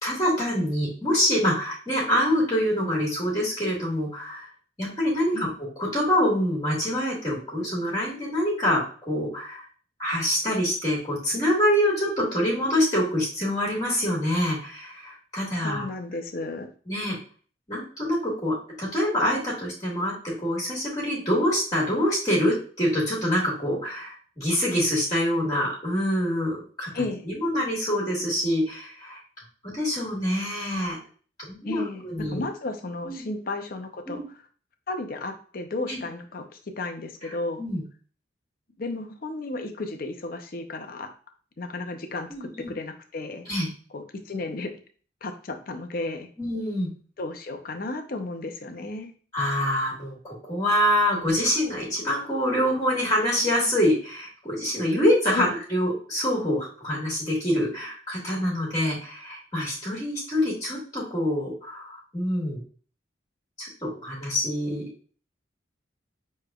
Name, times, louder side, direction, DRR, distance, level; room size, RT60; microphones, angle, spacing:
voice 1, 0.0-4.5 4.8-5.5 5.8-9.6 10.0-15.8 16.9-17.2 17.7-26.9 27.3-29.2 29.6-31.0 31.5-32.4 33.0-33.2 34.1-34.2 35.9-36.0 37.6-37.8 42.3-42.7 43.5-43.7 46.4-46.9 49.3-62.6 63.6-64.8, equal, 20° left, -5 dB, 1.7 m, -25 dB
voice 2, 15.6-16.7 26.9-27.3 31.6-34.2 34.9-37.6 38.8-41.1 41.6-43.5 43.9-44.8 45.2-46.3 47.2-49.1 55.3-55.6, left 2 dB, 45° left, 6 dB, 0.6 m, -33 dB
6.7 x 3.2 x 2.3 m, 0.42 s
head